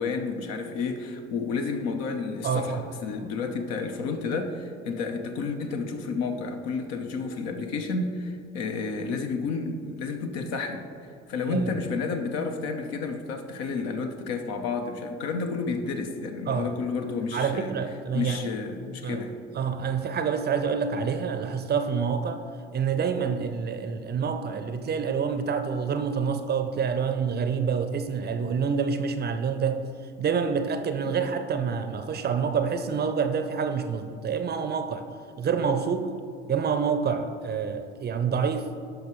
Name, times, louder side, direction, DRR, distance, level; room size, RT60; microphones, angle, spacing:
voice 1, 0.0-10.9 11.3-17.7 18.1-19.4 31.1-31.3, left 4 dB, 60° left, 5 dB, 0.9 m, -31 dB
voice 2, 2.4-2.8 11.5-11.7 16.5-16.7 17.3-18.5 19.0-19.2 19.5-22.4 22.7-29.8 30.2-35.1 35.4-36.1 36.5-38.7, right 6 dB, 35° right, 8 dB, 0.6 m, -27 dB
12.0 x 4.9 x 3.1 m, 2.4 s
hypercardioid pair, 60°, 30 cm